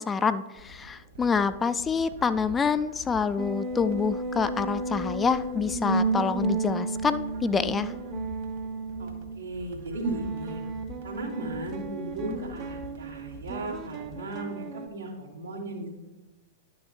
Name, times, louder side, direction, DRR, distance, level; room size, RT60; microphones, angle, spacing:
voice 1, 0.0-7.9, left 5 dB, 15° left, 12 dB, 0.4 m, -27 dB
sound 1, 0.5-14.1, left 2 dB, 60° right, 2.1 m, -47 dB
sound 2, 3.4-9.4 10.0-14.9, right 3 dB, 35° right, 0.9 m, -33 dB
voice 2, 9.0-10.6 11.0-15.9, right 2 dB, 85° right, -5 dB, 2.7 m, -36 dB
11.0 x 6.4 x 3.1 m, 1.1 s
figure-of-eight pair, 100°, 0 cm